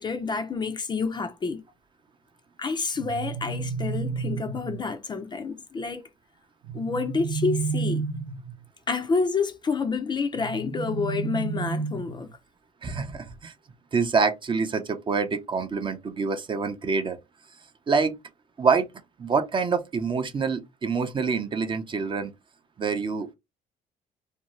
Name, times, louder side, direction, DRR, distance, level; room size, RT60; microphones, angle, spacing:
voice 1, 0.0-1.6 2.6-6.0 6.7-8.0 8.9-12.3, left 4 dB, 25° left, 0.4 m, -28 dB
sound 1, 2.9-4.9 6.6-8.6 10.4-12.3, right 5 dB, 75° right, 0.6 m, -31 dB
voice 2, 12.8-13.5 13.9-17.2 17.9-18.1 18.6-18.9 19.2-22.3 22.8-23.3, right 5 dB, 30° right, 0.5 m, -26 dB
2.6 x 2.2 x 2.9 m
cardioid pair, 110°, 17 cm